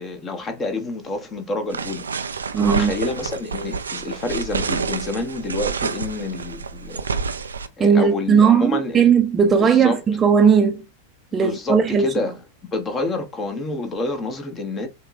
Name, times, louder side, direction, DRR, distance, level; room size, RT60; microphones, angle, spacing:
voice 1, 0.0-7.0 7.3-7.5 7.8-9.1 9.4-10.0 11.3-12.4 12.7-14.9, left 2 dB, 20° left, 0.9 m, -28 dB
sound 1, 1.7-7.7, right 5 dB, 70° right, 0.3 m, -28 dB
voice 2, 2.5-2.9 7.8-10.8 11.3-12.1, right 6 dB, 20° right, 0.6 m, -17 dB
5.7 x 2.2 x 2.6 m
figure-of-eight pair, 90°, 0 cm